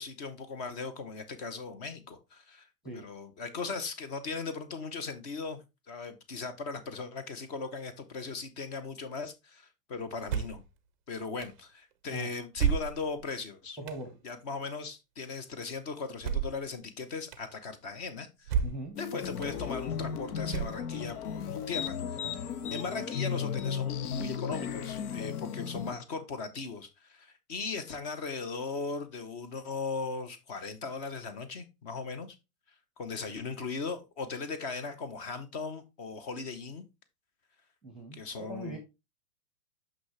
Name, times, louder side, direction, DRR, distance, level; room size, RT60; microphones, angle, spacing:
voice 1, 0.0-2.7 2.9-5.6 5.9-10.6 11.1-13.8 14.2-18.6 19.0-32.4 33.0-36.8 38.1-38.8, left 4 dB, 25° left, 0.6 m, -38 dB
sound 1, 10.3-10.7 11.4-11.5 12.6-13.3 13.9-14.0 16.2-16.7 17.3-17.4 18.5-18.9 19.4-19.5 20.5-21.1, right 7 dB, 30° right, 0.5 m, -31 dB
voice 2, 13.8-14.1 18.6-19.0 37.8-38.8, right 2 dB, ahead, 0.9 m, -40 dB
sound 2, 19.0-25.9, left 7 dB, 75° left, 0.9 m, -35 dB
6.1 x 5.6 x 3.1 m
hypercardioid pair, 145°, 46 cm